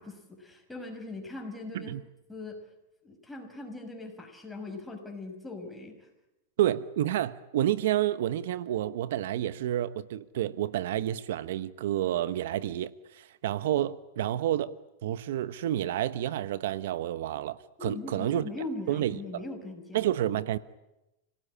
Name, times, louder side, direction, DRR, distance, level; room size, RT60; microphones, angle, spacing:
voice 1, 0.0-1.9 2.3-2.6 3.0-6.1 17.8-20.0, left 2 dB, 5° left, 5.7 m, -40 dB
voice 2, 6.6-14.8 15.0-18.5 18.9-19.4 19.9-20.6, right 12 dB, 70° right, 1.0 m, -29 dB
28.5 x 18.0 x 9.9 m
supercardioid pair, 140°, 0 cm